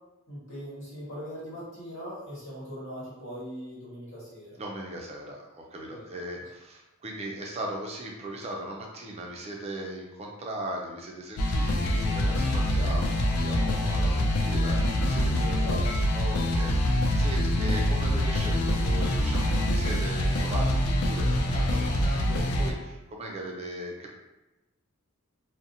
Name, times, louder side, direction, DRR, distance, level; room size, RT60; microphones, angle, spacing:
voice 1, 0.3-4.6 5.9-6.0 15.5-15.8 17.5-17.8, equal, 65° left, -8 dB, 1.2 m, -40 dB
voice 2, 4.6-15.9 16.1-24.2, right 1 dB, 30° right, -1 dB, 0.3 m, -38 dB
sound 1, 11.4-22.7, left 1 dB, 80° left, 0.4 m, -25 dB
2.6 x 2.0 x 2.6 m, 1.0 s
head